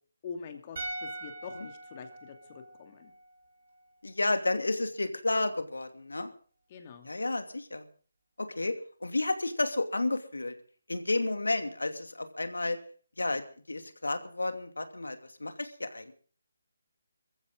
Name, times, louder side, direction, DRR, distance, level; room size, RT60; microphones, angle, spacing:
voice 1, 0.2-2.4 2.8-3.1 6.7-7.1, left 5 dB, 30° left, 6 dB, 2.8 m, -44 dB
sound 1, 0.8-4.4, right 2 dB, 45° right, 4.9 m, -43 dB
voice 2, 4.0-6.3 7.0-7.8 8.4-10.5 10.9-12.8 13.2-16.1, left 2 dB, 75° left, 8 dB, 2.7 m, -31 dB
22.5 x 15.0 x 3.9 m, 0.42 s
figure-of-eight pair, 150°, 0 cm